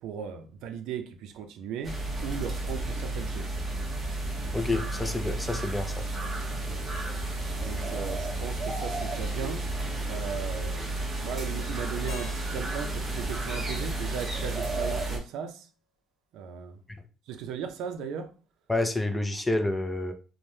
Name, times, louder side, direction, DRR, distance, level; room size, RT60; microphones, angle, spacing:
voice 1, 0.0-3.5 6.7-6.9 7.6-15.7 16.3-16.8 17.3-18.3, right 7 dB, 80° right, 0.4 m, -37 dB
sound 1, 1.8-15.2, right 2 dB, 25° right, 0.8 m, -32 dB
voice 2, 4.5-6.0 18.7-20.1, left 2 dB, 10° left, 0.3 m, -28 dB
Keyboard (musical), 12.1-15.0, left 2 dB, 80° left, 0.7 m, -50 dB
3.2 x 2.1 x 2.7 m
cardioid pair, 145°, 0 cm